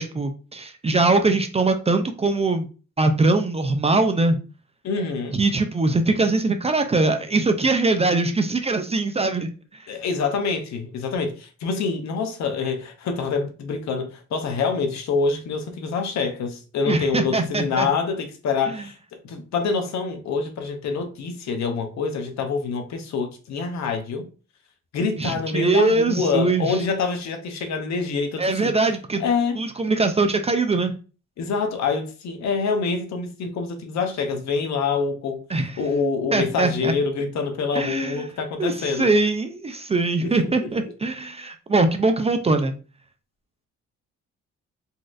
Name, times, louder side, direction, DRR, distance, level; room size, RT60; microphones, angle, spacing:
voice 1, 0.0-2.7 3.0-4.4 5.3-9.5 16.9-17.9 18.7-18.8 25.2-26.8 28.4-29.2 29.6-30.9 35.5-35.8 36.3-36.9 37.7-38.2 38.6-42.7, right 3 dB, 20° right, 0.4 m, -22 dB
voice 2, 4.8-5.4 9.9-18.9 19.2-24.3 24.9-28.7 29.2-29.6 31.4-35.4 35.8-39.1 40.2-40.4 40.6-40.7, left 5 dB, 65° left, 0.7 m, -26 dB
4.0 x 2.4 x 2.4 m
cardioid pair, 90°, 30 cm